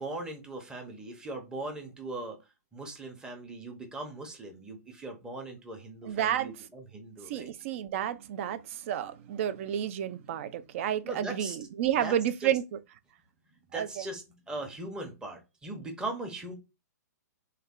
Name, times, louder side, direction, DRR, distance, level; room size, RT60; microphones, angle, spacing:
voice 1, 0.0-2.4 2.7-7.5 11.0-11.6 12.0-12.2 12.4-12.5 13.7-16.5, right 2 dB, 10° right, 0.7 m, -39 dB
voice 2, 6.0-6.5 7.3-12.8 13.7-14.0, right 10 dB, 45° right, 0.4 m, -31 dB
3.2 x 2.3 x 3.6 m
hypercardioid pair, 145°, 10 cm